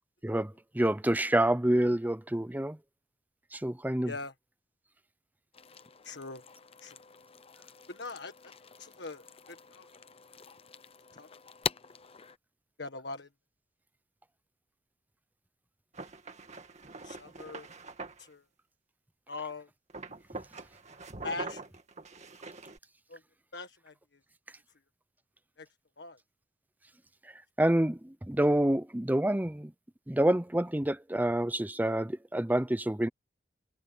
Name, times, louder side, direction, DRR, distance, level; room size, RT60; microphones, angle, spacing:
voice 1, 0.2-2.8 3.5-4.1 27.6-29.7 30.1-33.1, right 1 dB, 10° right, 0.7 m, -27 dB
sound 1, 5.5-12.4, left 6 dB, 35° left, 0.8 m, -43 dB
voice 2, 6.0-6.4 6.8-7.0 7.9-8.3 8.8-9.9 11.1-11.3 12.8-13.3 17.0-17.7 18.2-18.4 19.3-19.7 21.2-21.7 23.1-23.2 23.5-23.9 25.6-25.7 26.0-26.2, left 3 dB, 70° left, 1.7 m, -41 dB
sound 2, 15.9-18.2 19.9-22.8, right 3 dB, 40° right, 2.1 m, -44 dB
head